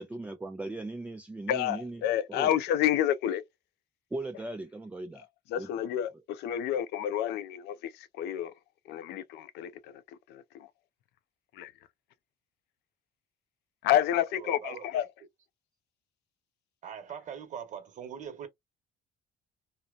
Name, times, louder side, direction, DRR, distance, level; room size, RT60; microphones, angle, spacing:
voice 1, 0.0-2.0 2.3-2.5 4.1-5.3 5.6-5.9, right 2 dB, 10° right, 0.3 m, -38 dB
voice 2, 1.5-3.4 5.5-8.5 8.9-10.0 10.3-10.7 11.5-11.7 13.8-15.1, left 11 dB, 80° left, 0.4 m, -29 dB
voice 3, 14.4-14.8 16.8-18.5, right 8 dB, 45° right, 1.1 m, -41 dB
2.8 x 2.1 x 2.4 m
cardioid pair, 110°, 17 cm